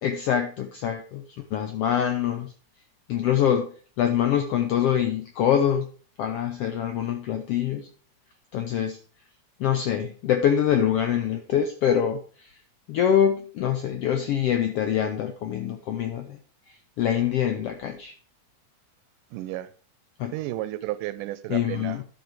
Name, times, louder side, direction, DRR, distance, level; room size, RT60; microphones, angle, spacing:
voice 1, 0.0-1.2 1.5-2.5 3.1-5.9 6.2-7.9 8.5-9.0 9.6-12.6 12.9-16.4 16.7-18.1 20.2-20.4 21.5-22.0, left 9 dB, 85° left, 6 dB, 1.3 m, -25 dB
voice 2, 19.3-19.7 20.3-22.0, right 15 dB, 85° right, 16 dB, 2.1 m, -32 dB
12.0 x 5.3 x 4.8 m, 0.42 s
omnidirectional pair, 3.7 m